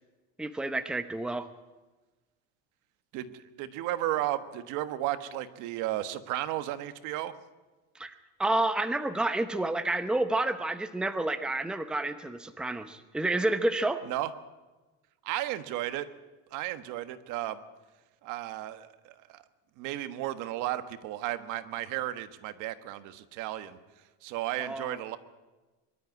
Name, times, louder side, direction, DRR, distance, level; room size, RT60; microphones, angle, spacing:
voice 1, 0.4-1.5 7.9-8.1 8.4-14.0 24.6-25.0, right 2 dB, 5° right, 9 dB, 0.9 m, -29 dB
voice 2, 3.1-7.3 14.0-14.3 15.2-16.0 16.5-17.6 18.2-19.4 19.8-23.8 24.2-25.2, right 14 dB, 65° right, 11 dB, 1.5 m, -34 dB
23.0 x 12.5 x 9.8 m, 1.2 s
cardioid pair, 145°, 33 cm